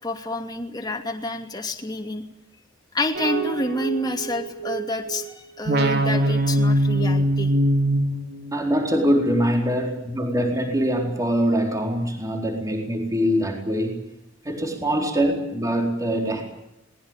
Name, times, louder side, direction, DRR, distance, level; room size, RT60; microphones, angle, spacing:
voice 1, 0.0-2.3 2.9-7.5, left 1 dB, 20° left, 3 dB, 2.7 m, -28 dB
sound 1, 3.1-5.2 5.7-8.9, right 1 dB, 55° right, 3.2 m, -23 dB
voice 2, 8.5-14.0 14.4-16.4, equal, 15° right, 3 dB, 4.3 m, -23 dB
22.0 x 20.5 x 9.1 m, 0.86 s
head